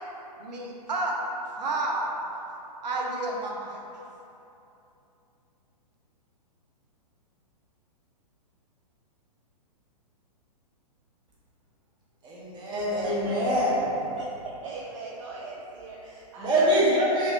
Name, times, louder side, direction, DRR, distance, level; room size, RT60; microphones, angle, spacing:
voice 1, 0.4-1.1 1.5-2.1 2.8-3.8, right 2 dB, 80° right, -1 dB, 0.9 m, -30 dB
voice 2, 12.2-14.0 16.4-17.3, equal, 20° right, -7 dB, 1.1 m, -24 dB
voice 3, 13.0-13.4 14.2-17.0, right 3 dB, 50° right, -4 dB, 0.5 m, -40 dB
5.6 x 2.7 x 3.3 m, 2.9 s
hypercardioid pair, 135°, 21 cm